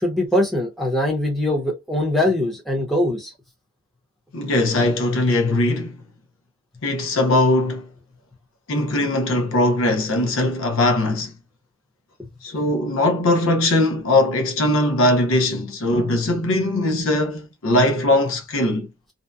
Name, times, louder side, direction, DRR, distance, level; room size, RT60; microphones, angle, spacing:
voice 1, 0.0-3.3 12.2-12.3, left 1 dB, ahead, 0.8 m, -22 dB
voice 2, 4.3-6.0 6.8-7.9 8.7-11.3 12.4-18.9, left 1 dB, 70° left, 0.6 m, -20 dB
2.6 x 2.2 x 2.2 m
head